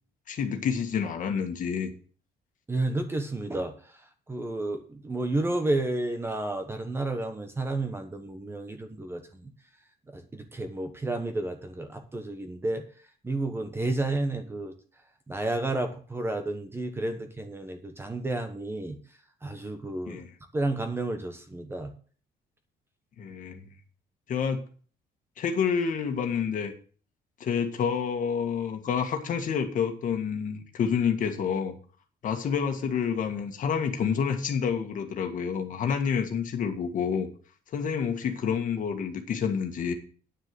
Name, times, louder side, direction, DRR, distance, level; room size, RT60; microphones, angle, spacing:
voice 1, 0.3-1.9 20.1-20.3 23.2-23.7 24.3-24.6 25.4-26.7 27.4-31.7 32.2-37.3 37.7-39.9, left 7 dB, 45° left, 5 dB, 1.9 m, -28 dB
voice 2, 2.7-3.7 4.3-9.5 10.1-12.8 13.2-14.7 15.3-19.0 19.4-20.2 20.5-21.9, right 2 dB, 15° right, 7 dB, 1.1 m, -31 dB
9.7 x 6.5 x 7.5 m, 0.42 s
cardioid pair, 170°, 18 cm